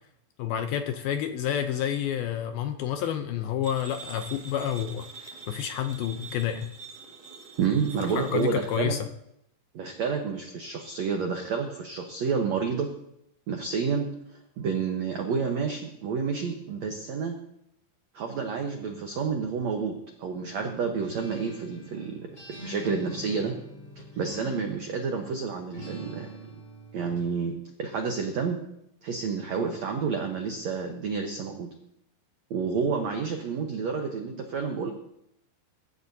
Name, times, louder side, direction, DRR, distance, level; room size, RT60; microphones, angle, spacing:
voice 1, 0.4-5.1 5.5-6.7 8.1-9.0, left 10 dB, 80° left, 7 dB, 2.2 m, -29 dB
sound 1, 3.6-8.8, right 4 dB, 55° right, 3.1 m, -45 dB
voice 2, 7.6-9.0 9.7-12.9 13.5-14.1 14.6-17.3 18.1-23.5 24.2-26.3 26.9-27.5 27.8-28.6 29.0-31.7 32.5-34.9, right 5 dB, 80° right, 3 dB, 1.5 m, -29 dB
Acoustic guitar, 21.0-25.1 25.7-27.3, equal, 15° left, 5.0 m, -44 dB
23.0 x 12.0 x 2.7 m, 0.79 s
omnidirectional pair, 4.9 m